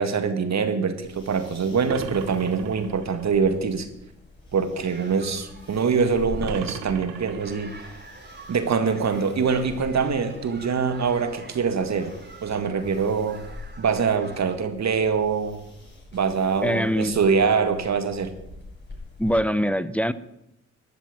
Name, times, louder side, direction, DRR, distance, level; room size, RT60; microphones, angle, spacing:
voice 1, 0.0-3.9 4.5-7.9 8.5-12.1 12.4-13.4 13.8-15.6 16.1-18.3, right 5 dB, 55° right, 9 dB, 1.9 m, -24 dB
sound 1, 1.0-19.3, left 3 dB, 30° left, 6.8 m, -45 dB
sound 2, 1.9-3.3 6.4-7.9, right 8 dB, 85° right, 1.3 m, -37 dB
sound 3, 4.8-14.6, right 3 dB, 30° right, 3.1 m, -47 dB
voice 2, 16.6-17.2 19.2-20.1, equal, 5° left, 15 dB, 0.7 m, -23 dB
13.5 x 6.1 x 9.4 m, 0.84 s
supercardioid pair, 60°, 33 cm